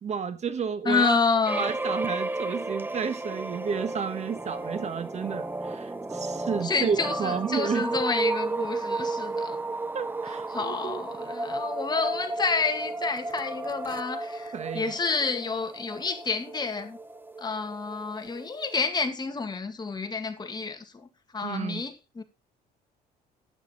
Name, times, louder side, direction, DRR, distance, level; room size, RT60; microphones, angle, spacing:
voice 1, 0.0-1.2 1.6-7.9 9.9-11.0 14.5-14.9 21.4-21.8, right 6 dB, 40° right, 1.3 m, -31 dB
voice 2, 0.8-1.6 6.6-9.6 10.5-17.0 17.4-21.1 21.3-22.2, left 4 dB, 25° left, 2.1 m, -29 dB
sound 1, 1.5-18.8, right 2 dB, 10° right, 0.7 m, -33 dB
12.0 x 9.2 x 3.8 m
cardioid pair, 110°, 17 cm